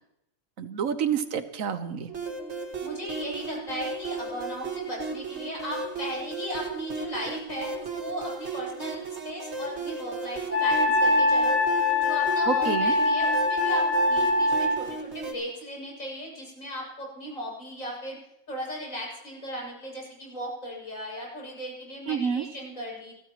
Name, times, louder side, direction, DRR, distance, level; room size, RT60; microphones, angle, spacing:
voice 1, 0.6-2.1 12.5-12.9 22.1-22.4, right 7 dB, 80° right, 11 dB, 1.4 m, -28 dB
sound 1, 2.1-15.3, right 4 dB, 55° right, 2.1 m, -35 dB
voice 2, 2.8-11.6 12.0-18.2 18.5-23.1, equal, 75° left, -3 dB, 8.1 m, -37 dB
Wind instrument woodwind instrument, 10.5-14.8, left 2 dB, 30° right, 3.4 m, -23 dB
29.5 x 13.5 x 3.1 m, 0.84 s
omnidirectional pair, 1.4 m